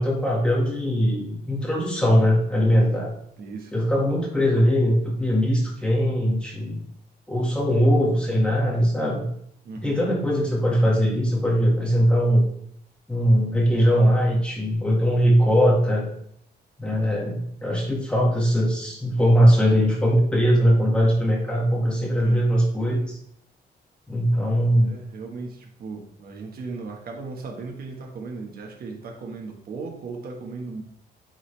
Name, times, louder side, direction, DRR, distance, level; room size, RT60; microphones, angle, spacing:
voice 1, 0.0-3.1 3.7-6.8 7.3-9.2 9.8-12.5 13.1-16.1 16.8-23.2 24.1-24.9, equal, 5° left, -3 dB, 1.7 m, -20 dB
voice 2, 3.4-3.8 9.6-10.0 22.2-22.5 24.8-30.8, right 4 dB, 65° right, 1 dB, 1.4 m, -36 dB
8.9 x 3.9 x 3.3 m, 0.71 s
cardioid pair, 155°, 17 cm